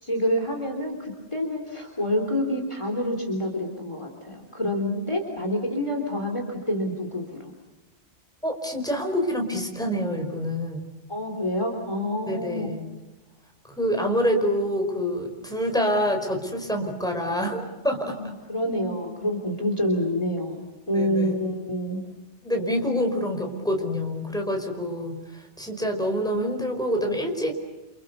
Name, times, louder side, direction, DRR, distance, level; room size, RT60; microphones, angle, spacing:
voice 1, 0.0-7.5 11.1-12.7 18.2-22.0, left 1 dB, 25° left, 2 dB, 3.6 m, -27 dB
voice 2, 8.4-10.9 12.3-12.9 13.7-18.2 20.9-21.3 22.4-27.5, equal, 5° left, 3 dB, 5.0 m, -26 dB
29.5 x 28.0 x 6.9 m, 1.1 s
omnidirectional pair, 1.2 m